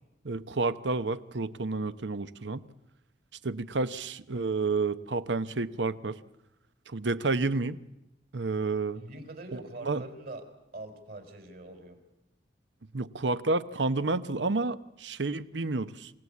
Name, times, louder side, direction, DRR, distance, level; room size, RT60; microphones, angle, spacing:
voice 1, 0.2-2.7 3.4-6.2 6.9-7.8 8.3-9.0 9.8-10.0 12.9-16.1, right 3 dB, 80° right, 14 dB, 0.9 m, -30 dB
voice 2, 8.9-10.5 10.7-12.0, right 2 dB, 55° right, 7 dB, 3.9 m, -43 dB
27.5 x 17.5 x 8.4 m, 0.94 s
head